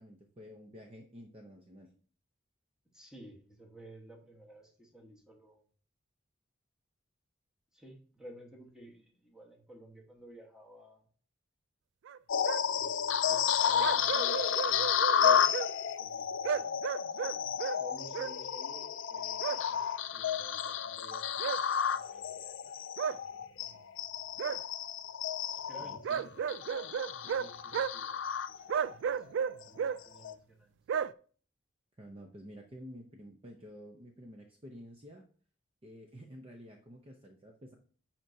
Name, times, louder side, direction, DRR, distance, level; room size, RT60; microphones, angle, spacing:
voice 1, 0.0-1.9 25.8-26.0 32.0-35.2 35.8-37.8, equal, 30° right, 3 dB, 0.7 m, -50 dB
voice 2, 2.9-5.6 7.7-11.0 12.6-15.7 16.0-16.7 17.0-17.5 17.8-19.8 20.1-22.7 23.0-23.5 25.5-29.3 29.6-30.7, right 1 dB, 5° right, -1 dB, 1.4 m, -54 dB
sound 1, 12.1-12.2 12.5-12.6 13.8-15.7 16.4-17.8 18.1-18.3 19.4-19.6 21.4-21.6 23.0-23.2 24.4-24.6 26.0-27.5 27.7-27.9 28.7-30.0 30.9-31.1, right 7 dB, 65° right, 0.3 m, -33 dB
sound 2, 12.3-29.0 29.4-29.6 30.2-30.3, left 8 dB, 70° left, 0.4 m, -32 dB
9.9 x 4.4 x 2.8 m, 0.42 s
head